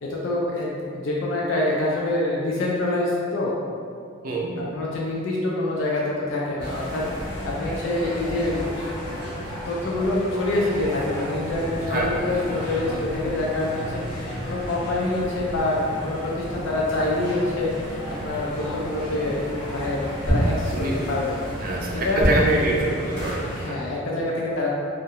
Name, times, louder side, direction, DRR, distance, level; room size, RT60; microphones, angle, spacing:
voice 1, 0.0-3.5 4.6-8.9 9.7-19.4 19.7-21.5 21.9-22.3 23.5-24.7, left 2 dB, 70° left, -4 dB, 0.4 m, -26 dB
voice 2, 4.2-4.6 11.9-12.3 20.7-21.1 21.6-23.8, right 2 dB, 45° right, -2 dB, 0.3 m, -25 dB
sound 1, 6.6-23.7, equal, 25° left, 0.8 m, -33 dB
sound 2, 20.2-21.1 22.2-22.9, right 1 dB, 5° right, 0.7 m, -23 dB
2.4 x 2.1 x 2.7 m, 2.3 s
head